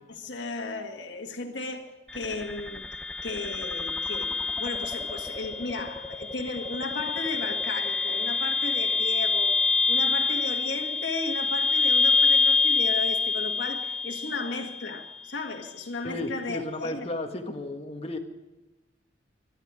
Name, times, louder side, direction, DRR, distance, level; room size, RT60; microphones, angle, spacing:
voice 1, 0.2-1.9 2.1-2.8 3.2-9.6 9.9-17.1, left 3 dB, 80° left, 1.9 m, -35 dB
sound 1, 2.1-15.1, left 4 dB, 5° left, 0.8 m, -26 dB
voice 2, 16.0-18.2, left 2 dB, 35° left, 1.8 m, -34 dB
24.0 x 11.5 x 5.0 m
head